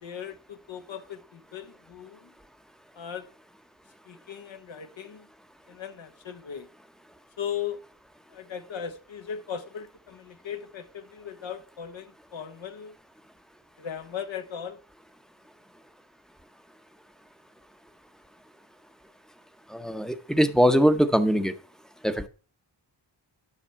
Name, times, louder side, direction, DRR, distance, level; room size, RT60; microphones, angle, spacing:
voice 1, 0.0-2.3 2.9-3.3 4.1-5.3 5.7-6.7 7.4-7.8 8.3-13.0 13.8-14.8, left 8 dB, 70° left, 1.1 m, -38 dB
voice 2, 19.7-21.5 22.0-22.3, equal, ahead, 0.8 m, -22 dB
10.0 x 6.5 x 4.5 m
wide cardioid pair, 90°, 47 cm